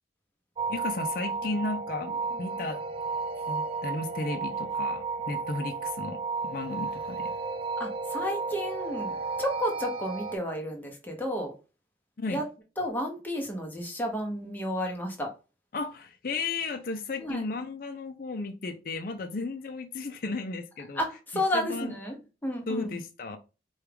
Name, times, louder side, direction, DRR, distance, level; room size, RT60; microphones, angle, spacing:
sound 1, 0.6-10.4, right 4 dB, 30° right, 0.4 m, -33 dB
voice 1, 0.7-2.8 3.5-7.3 12.2-12.4 15.7-21.0 21.5-22.0 22.7-23.4, left 3 dB, 50° left, 0.4 m, -34 dB
voice 2, 7.8-11.5 12.3-12.4 12.8-15.3 17.2-17.4 21.0-22.2 22.4-23.0, equal, 10° left, 0.8 m, -32 dB
4.6 x 2.3 x 3.3 m
head